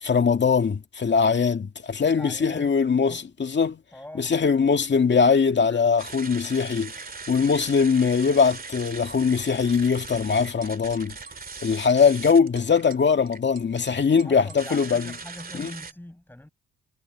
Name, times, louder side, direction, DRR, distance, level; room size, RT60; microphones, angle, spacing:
voice 1, 0.0-3.8 4.2-6.9 7.3-11.2 11.6-15.0 15.6-15.7, left 5 dB, 35° left, 2.1 m, -21 dB
voice 2, 2.0-3.3 3.9-4.4 5.5-5.8 14.1-16.5, left 1 dB, 5° left, 7.5 m, -43 dB
sound 1, 6.0-15.9, right 4 dB, 30° right, 2.4 m, -40 dB
cardioid pair, 90°, 30 cm